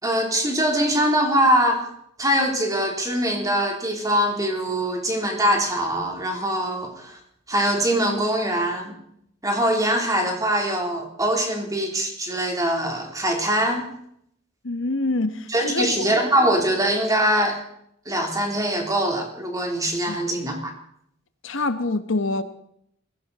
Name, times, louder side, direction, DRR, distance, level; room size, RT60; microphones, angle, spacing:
voice 1, 0.0-1.9 2.2-7.2 7.5-9.0 9.4-13.9 15.5-17.6 18.1-20.7, right 1 dB, 20° right, 3.4 m, -23 dB
voice 2, 14.6-16.1 20.1-20.2 21.4-22.4, left 2 dB, 70° left, 1.2 m, -25 dB
21.0 x 16.5 x 4.2 m
head